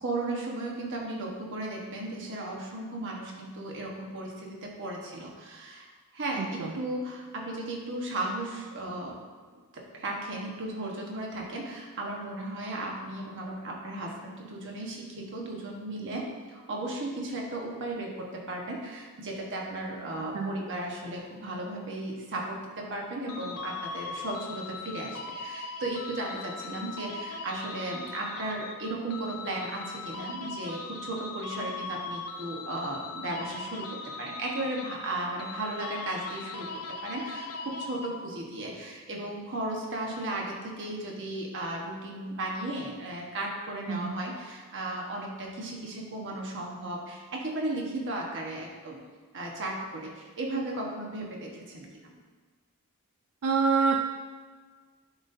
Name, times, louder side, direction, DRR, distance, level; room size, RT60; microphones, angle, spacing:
voice 1, 0.0-9.2 9.7-36.7 37.0-49.0 49.3-52.1, right 2 dB, 60° right, -1 dB, 1.2 m, -35 dB
voice 2, 6.4-6.7 20.3-20.5 43.9-44.1 53.4-54.0, right 5 dB, 85° right, 1 dB, 0.4 m, -26 dB
sound 1, 23.3-38.5, left 3 dB, 85° left, 0.6 m, -39 dB
10.5 x 4.1 x 2.7 m, 1.5 s
head